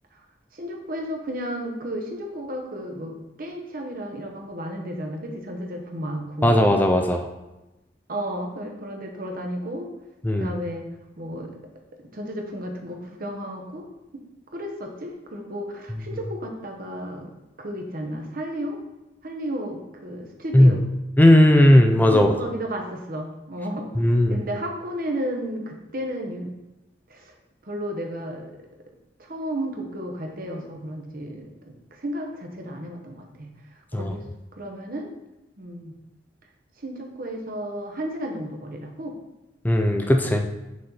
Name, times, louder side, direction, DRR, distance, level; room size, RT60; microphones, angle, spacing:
voice 1, 0.5-6.5 8.1-9.9 10.4-10.9 11.2-11.6 12.1-13.9 14.1-14.2 14.5-17.3 17.6-18.8 19.2-20.8 22.1-26.5 27.1-27.3 27.6-28.5 29.2-31.5 31.9-33.5 33.9-34.2 34.5-35.1 35.6-35.9 36.8-39.2, equal, 50° right, 2 dB, 1.0 m, -33 dB
voice 2, 6.4-7.3 10.2-10.5 20.5-20.7 21.2-22.3 24.0-24.4 33.9-34.1 39.6-40.5, left 1 dB, 10° left, 4 dB, 0.4 m, -16 dB
6.3 x 4.4 x 4.0 m, 0.99 s
head